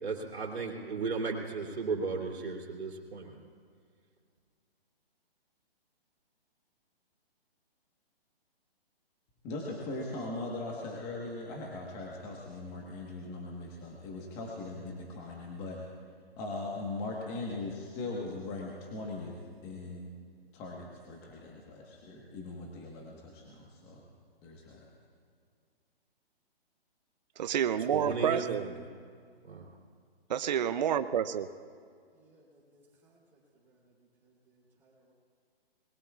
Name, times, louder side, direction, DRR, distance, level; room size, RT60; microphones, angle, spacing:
voice 1, 0.0-3.4 27.8-28.7 29.5-29.7, right 4 dB, 90° right, -1 dB, 3.1 m, -35 dB
voice 2, 9.4-15.8 16.4-19.3 19.6-20.1 20.5-24.0 24.4-24.8, left 2 dB, 15° left, -2 dB, 1.3 m, -40 dB
voice 3, 27.4-28.7 30.3-31.5, right 9 dB, 45° right, 11 dB, 0.5 m, -29 dB
voice 4, 32.1-33.2 33.5-33.9 34.2-35.1, right 1 dB, 5° right, -6 dB, 3.4 m, -65 dB
24.5 x 21.5 x 2.4 m, 2.1 s
hypercardioid pair, 155°, 31 cm